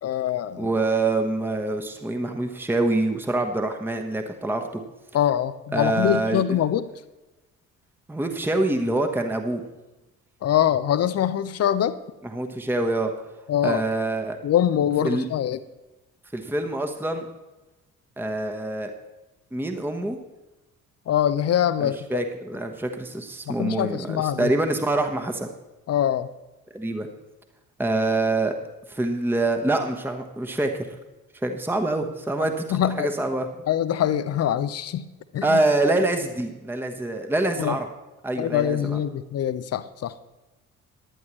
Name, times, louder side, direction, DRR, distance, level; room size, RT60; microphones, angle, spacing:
voice 1, 0.0-0.7 5.1-6.9 10.4-12.0 13.5-13.8 14.4-15.6 21.1-22.2 23.5-24.5 25.9-26.3 32.7-33.1 33.7-35.1 35.3-35.6 37.6-37.8 38.4-40.1, left 10 dB, 40° left, 14 dB, 0.6 m, -23 dB
voice 2, 0.6-4.8 5.7-6.6 8.1-9.6 12.2-13.1 13.6-14.4 15.0-15.2 16.3-17.3 18.2-18.9 19.5-20.2 21.8-25.5 26.7-27.1 27.8-28.5 28.9-31.0 31.4-33.6 35.4-37.9 38.2-39.0, right 2 dB, 5° right, 5 dB, 1.2 m, -25 dB
15.5 x 11.0 x 3.1 m, 1.1 s
figure-of-eight pair, 45°, 41 cm